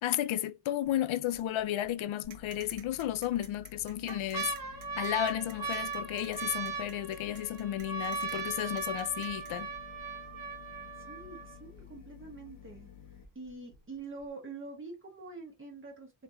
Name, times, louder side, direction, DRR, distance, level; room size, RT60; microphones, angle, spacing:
voice 1, 0.0-4.5 5.0-9.7, left 12 dB, 80° left, 0.6 m, -33 dB
sound 1, 0.9-1.4 1.8-1.9 2.8-3.4 3.8-11.8 12.5-12.6 12.8-13.2 13.7-13.8, right 4 dB, 45° right, 1.3 m, -38 dB
sound 2, 2.2-13.3, left 9 dB, 45° left, 1.0 m, -53 dB
sound 3, 2.3-9.5, right 8 dB, 75° right, 1.1 m, -53 dB
voice 2, 11.0-12.9 13.3-16.1, right 3 dB, 25° right, 1.2 m, -45 dB
4.3 x 3.0 x 2.5 m
wide cardioid pair, 170°, 47 cm